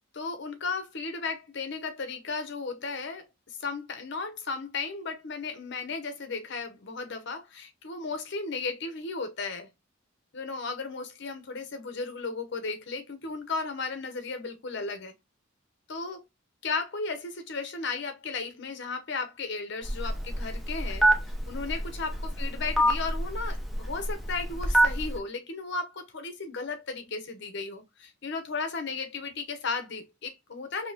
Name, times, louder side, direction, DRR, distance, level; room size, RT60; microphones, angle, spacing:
voice 1, 0.1-3.3 3.6-9.7 10.3-15.1 15.9-16.2 16.6-21.1 21.5-30.9, left 4 dB, 60° left, 0.8 m, -35 dB
Telephone, 19.8-25.2, right 1 dB, ahead, 0.7 m, -27 dB
5.2 x 2.8 x 2.8 m
head